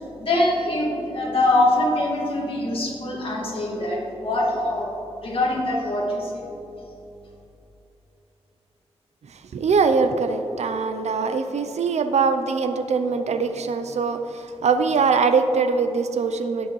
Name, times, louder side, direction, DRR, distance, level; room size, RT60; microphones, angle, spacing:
voice 1, 0.2-4.9 5.2-6.5, left 1 dB, 55° left, -3 dB, 2.1 m, -23 dB
voice 2, 9.3-16.7, right 5 dB, 85° right, 8 dB, 0.6 m, -22 dB
17.5 x 6.2 x 3.2 m, 2.9 s
wide cardioid pair, 130°, 11 cm